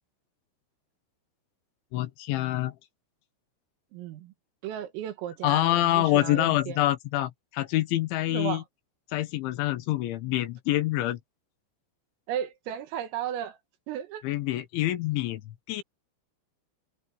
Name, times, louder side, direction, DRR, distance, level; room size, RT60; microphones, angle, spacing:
voice 1, 1.9-2.7 5.4-8.6 9.1-11.2 14.2-15.8, left 15 dB, 75° left, 3.4 m, -26 dB
voice 2, 3.9-4.3 4.6-6.8 8.3-8.6 12.3-13.6 13.9-14.2, right 10 dB, 85° right, 4.5 m, -34 dB
omnidirectional pair, 5.8 m